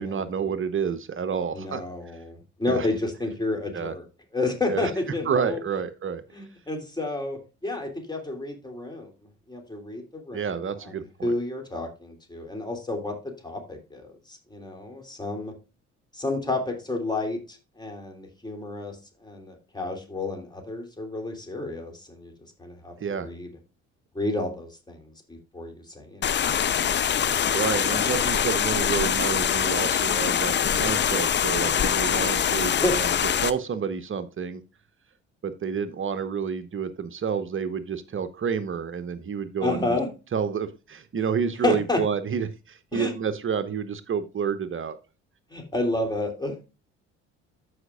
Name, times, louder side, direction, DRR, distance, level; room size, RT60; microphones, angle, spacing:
voice 1, 0.0-1.8 2.7-2.9 3.7-3.9 4.7-4.9 5.3-6.2 10.3-11.3 23.0-23.3 27.5-33.1 33.4-34.6 35.4-40.0 40.3-45.0, right 6 dB, 35° right, 12 dB, 1.0 m, -29 dB
voice 2, 1.5-4.0 4.3-5.6 6.3-9.1 9.5-13.1 13.4-15.5 16.1-22.3 22.6-23.5 24.1-26.2 32.8-33.0 39.6-40.1 41.6-42.0 42.9-43.1 45.5-46.6, left 2 dB, 10° left, 3 dB, 3.1 m, -30 dB
sound 1, 26.2-33.5, left 8 dB, 30° left, 0.6 m, -24 dB
14.0 x 5.1 x 2.4 m, 0.29 s
hypercardioid pair, 55°, 34 cm